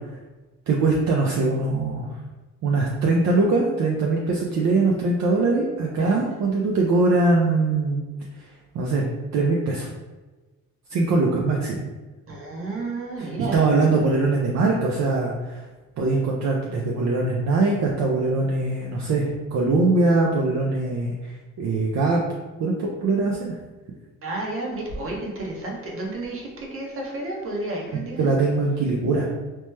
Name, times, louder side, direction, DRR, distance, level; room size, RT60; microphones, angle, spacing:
voice 1, 0.7-2.1 2.6-8.0 8.4-8.5 8.7-9.1 9.3-9.9 10.9-11.8 13.2-15.6 16.0-22.2 22.6-23.5 28.2-29.3, right 3 dB, 65° right, -1 dB, 0.5 m, -22 dB
voice 2, 12.3-13.7 24.2-28.3, right 2 dB, 45° right, -1 dB, 0.9 m, -31 dB
3.0 x 2.1 x 3.2 m, 1.2 s
cardioid pair, 90°, 30 cm